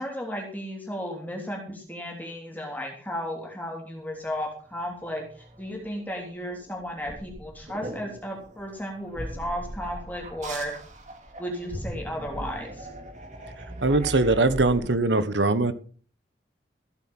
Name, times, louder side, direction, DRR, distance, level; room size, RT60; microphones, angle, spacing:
voice 1, 0.0-10.7 11.4-12.9, equal, 10° left, 3.2 m, -34 dB
sound 1, 4.5-14.9, right 1 dB, 40° right, 2.6 m, -40 dB
voice 2, 13.8-15.7, right 2 dB, 85° right, 1.4 m, -21 dB
15.5 x 9.4 x 5.6 m
head